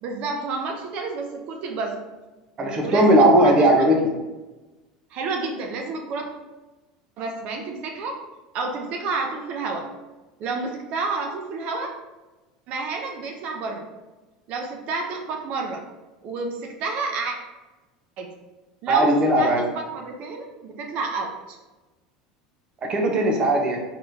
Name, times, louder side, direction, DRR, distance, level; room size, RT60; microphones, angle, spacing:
voice 1, 0.0-2.0 2.8-3.7 5.1-6.3 7.2-8.2 8.5-9.9 10.4-11.9 12.7-13.9 14.5-15.8 16.2-17.4 18.2-18.3 18.8-21.6, right 3 dB, 55° right, 3 dB, 0.7 m, -30 dB
voice 2, 2.6-4.1 18.9-19.6 22.8-23.8, right 1 dB, 35° right, 1 dB, 1.1 m, -18 dB
4.1 x 3.6 x 2.8 m, 1.1 s
hypercardioid pair, 90°, 3 cm